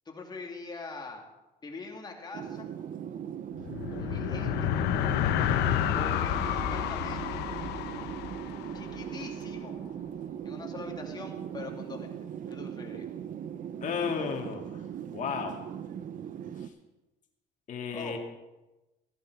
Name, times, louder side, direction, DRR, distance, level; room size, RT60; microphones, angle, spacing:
voice 1, 0.1-1.2 1.6-2.7 3.9-4.7 6.0-7.5 8.7-9.8 10.4-12.2 12.5-13.1 17.9-18.2, left 3 dB, 25° left, 1 dB, 2.4 m, -43 dB
sound 1, 2.3-16.7, right 9 dB, 50° right, 0.7 m, -39 dB
sound 2, 3.5-9.3, left 11 dB, 90° left, 0.9 m, -30 dB
voice 2, 13.8-14.8 15.1-15.6 17.7-18.2, left 6 dB, 50° left, 2 dB, 2.1 m, -33 dB
14.5 x 10.5 x 4.7 m, 1.0 s
cardioid pair, 110°, 17 cm